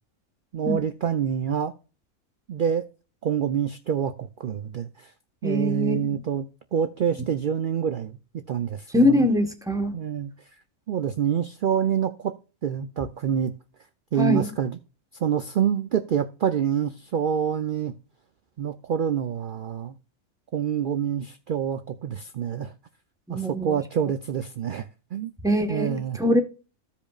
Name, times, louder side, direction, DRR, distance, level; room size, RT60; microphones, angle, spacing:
voice 1, 0.5-1.7 2.5-2.8 3.2-5.1 5.4-9.3 9.9-10.3 10.9-12.3 12.6-13.5 14.1-14.8 15.2-17.9 18.6-19.9 20.5-22.7 23.3-25.3 25.7-26.2, right 8 dB, 60° right, 0.5 m, -27 dB
voice 2, 5.4-6.1 8.9-9.9 14.2-14.5 23.3-23.8 25.4-26.4, left 1 dB, 5° right, 1.1 m, -23 dB
15.0 x 5.2 x 2.4 m
omnidirectional pair, 1.5 m